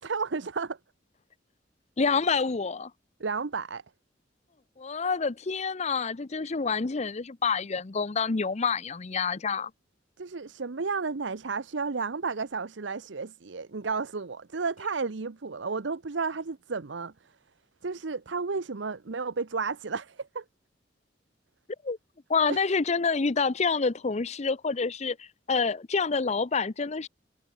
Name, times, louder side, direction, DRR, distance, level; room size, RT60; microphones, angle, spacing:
voice 1, 0.0-0.8 3.2-3.8 10.2-17.3 17.8-20.4 22.5-22.6, right 4 dB, 75° right, 0.8 m, -32 dB
voice 2, 2.0-2.9 4.8-9.7 21.8-22.0 22.3-27.1, left 5 dB, 35° left, 0.6 m, -27 dB
head